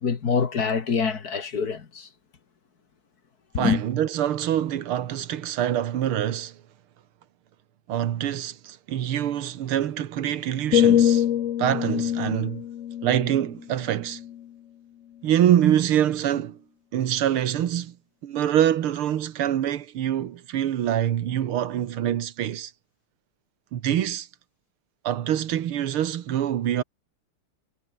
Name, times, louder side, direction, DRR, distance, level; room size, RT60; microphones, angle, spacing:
voice 1, 0.0-2.1 3.5-3.8, left 6 dB, 50° left, 2.2 m, -25 dB
voice 2, 3.6-6.6 7.9-11.3 11.6-12.6 13.0-14.2 15.2-16.6 16.9-18.0 18.2-22.7 23.7-24.3 25.0-26.8, right 11 dB, 85° right, 2.1 m, -25 dB
sound 1, 10.7-14.6 15.1-15.4, left 11 dB, 70° left, 0.7 m, -24 dB
omnidirectional pair, 2.3 m